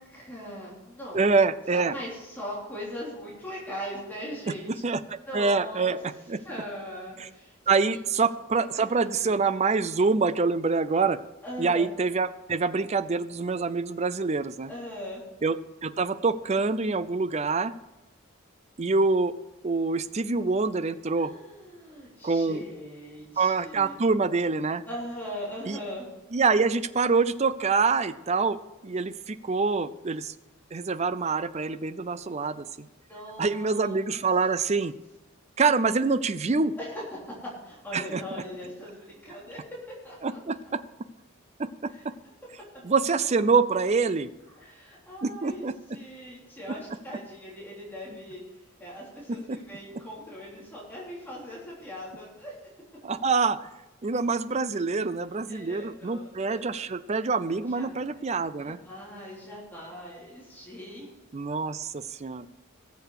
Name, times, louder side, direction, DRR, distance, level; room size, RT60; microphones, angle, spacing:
voice 1, 0.0-1.4 1.7-4.8 5.3-6.0 6.4-7.6 7.9-8.0 8.8-9.4 11.4-11.9 14.7-15.2 21.2-24.0 24.8-26.1 33.1-34.0 36.8-39.6 40.0-40.4 41.9-42.0 44.5-48.4 48.8-52.5 55.5-56.7 57.5-61.1, equal, 10° left, -6 dB, 3.3 m, -40 dB
voice 2, 1.1-1.9 4.8-6.0 6.3-6.4 7.2-7.3 7.7-11.2 11.6-14.7 15.4-15.6 15.8-17.7 18.8-19.3 19.6-21.3 22.2-22.6 23.4-24.8 25.7-25.8 26.3-28.6 28.8-30.3 30.7-32.9 33.4-34.9 35.6-36.7 37.9-38.2 40.2-40.6 42.8-44.3 45.2-45.7 53.0-53.7 54.0-58.8 61.3-62.5, right 4 dB, 30° right, 14 dB, 0.5 m, -25 dB
18.0 x 7.0 x 4.8 m, 1.1 s
head